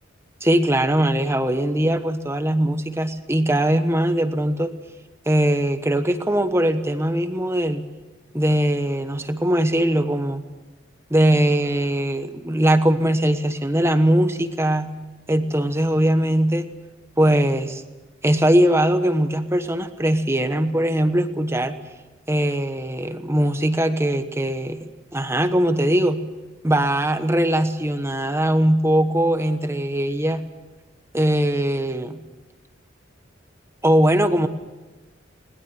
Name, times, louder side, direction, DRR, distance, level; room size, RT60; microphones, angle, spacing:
voice 1, 0.4-4.7 5.3-7.9 8.3-10.4 11.1-14.9 15.3-16.7 17.2-17.8 18.2-21.8 22.3-26.2 26.6-30.4 31.1-32.2 33.8-34.5, right 1 dB, 15° right, 9 dB, 1.2 m, -20 dB
21.0 x 19.5 x 7.6 m, 1.2 s
head